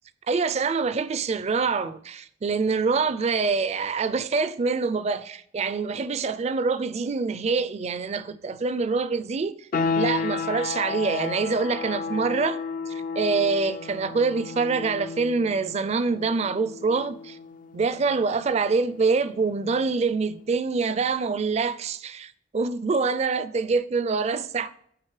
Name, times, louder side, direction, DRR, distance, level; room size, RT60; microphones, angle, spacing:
voice 1, 0.3-9.7 10.0-17.4 17.7-24.8, right 4 dB, 40° right, 0.4 m, -25 dB
sound 1, 9.7-20.2, left 4 dB, 50° left, 0.4 m, -33 dB
8.8 x 3.9 x 3.2 m
head